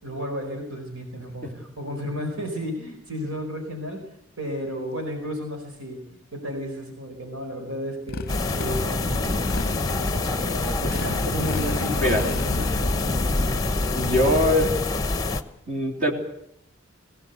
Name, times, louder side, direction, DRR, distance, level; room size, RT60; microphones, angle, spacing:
voice 1, 0.0-4.1 4.4-6.0 6.3-8.2 8.5-13.7, equal, 75° right, 3 dB, 4.5 m, -33 dB
Motorcycle, 8.1-13.5, left 3 dB, 45° left, 0.7 m, -33 dB
sound 1, 8.3-15.4, left 2 dB, 15° left, 1.0 m, -26 dB
voice 2, 13.8-14.8 15.7-16.1, left 1 dB, 35° right, 1 dB, 3.6 m, -22 dB
22.0 x 17.5 x 8.2 m, 0.77 s
head